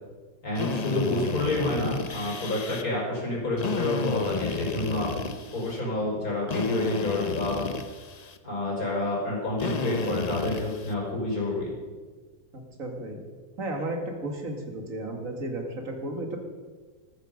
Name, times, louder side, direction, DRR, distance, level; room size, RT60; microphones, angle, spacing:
voice 1, 0.4-5.1 5.5-7.7 8.4-11.7, left 2 dB, 50° left, -3 dB, 5.6 m, -28 dB
Drill, 0.5-2.8 3.6-5.8 6.5-8.4 9.6-10.9, left 4 dB, 80° left, 0.3 m, -32 dB
voice 2, 12.5-13.2 13.6-16.4, right 1 dB, 45° right, 3 dB, 2.6 m, -33 dB
13.5 x 13.5 x 5.3 m, 1.4 s
omnidirectional pair, 2.0 m